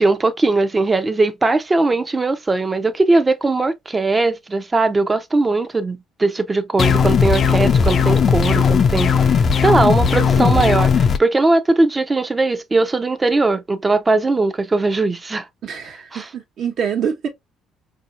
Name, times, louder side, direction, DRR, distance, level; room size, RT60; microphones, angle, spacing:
voice 1, 0.0-15.5 16.1-16.3, right 3 dB, 20° right, 0.7 m, -19 dB
sound 1, 6.8-11.2, left 6 dB, 45° left, 0.5 m, -16 dB
voice 2, 10.3-10.8 15.6-17.3, right 7 dB, 60° right, 1.2 m, -26 dB
4.7 x 2.7 x 2.5 m
cardioid pair, 90°, 0 cm